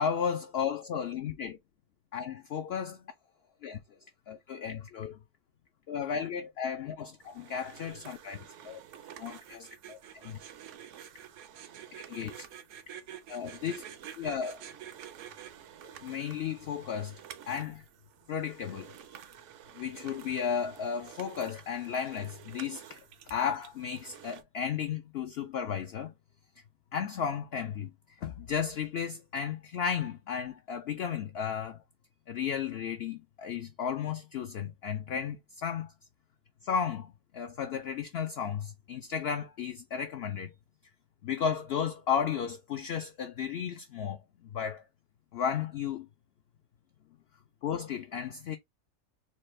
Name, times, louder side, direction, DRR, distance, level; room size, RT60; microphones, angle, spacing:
voice 1, 0.0-1.6 2.1-3.0 3.6-3.8 4.3-5.2 5.9-8.8 9.2-10.4 11.9-12.4 13.3-13.8 14.1-14.6 16.0-17.2 17.5-17.8 18.3-18.9 19.7-23.0 23.3-26.1 26.9-27.9 28.2-31.8 32.3-35.9 36.6-40.5 41.2-44.2 44.4-44.8 45.3-46.1 47.6-48.6, left 7 dB, 65° left, 0.6 m, -34 dB
sound 1, 7.2-24.4, right 9 dB, 65° right, 0.8 m, -52 dB
sound 2, 9.2-15.5, right 10 dB, 85° right, 1.2 m, -47 dB
4.3 x 2.3 x 3.1 m
omnidirectional pair, 1.5 m